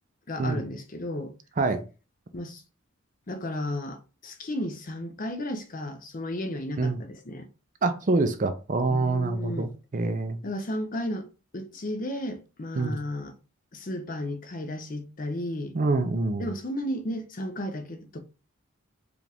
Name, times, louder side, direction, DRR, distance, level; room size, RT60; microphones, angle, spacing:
voice 1, 0.3-1.3 2.3-2.6 3.3-7.5 8.9-9.7 10.4-11.3 11.5-13.4 13.7-15.8 16.4-18.2, left 1 dB, 40° left, 0.6 m, -33 dB
voice 2, 7.8-10.4 12.8-13.0 15.7-16.5, right 3 dB, 40° right, 0.5 m, -26 dB
4.9 x 2.5 x 3.4 m
head